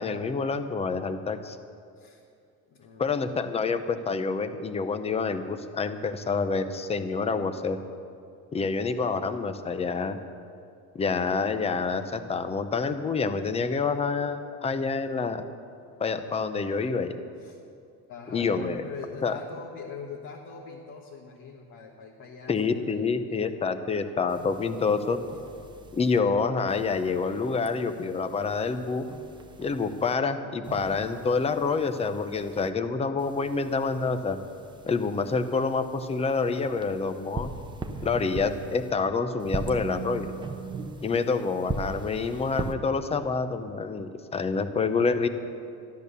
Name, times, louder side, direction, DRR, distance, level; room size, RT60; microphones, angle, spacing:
voice 1, 0.0-1.6 3.0-7.8 8.5-10.2 11.0-15.4 16.0-17.2 18.3-18.8 19.2-19.4 22.5-25.2 26.0-29.1 29.6-34.4 34.9-37.5 38.0-40.3 41.0-45.3, left 4 dB, 15° left, 10 dB, 0.7 m, -27 dB
voice 2, 2.7-3.6 17.4-17.6 18.1-24.0, left 5 dB, 50° left, -1 dB, 1.6 m, -43 dB
sound 1, 24.3-26.2 26.7-30.1 30.6-32.7 33.2-38.9 39.4-42.8, right 3 dB, 15° right, 0.7 m, -40 dB
13.5 x 12.0 x 6.8 m, 2.4 s
cardioid pair, 150°, 36 cm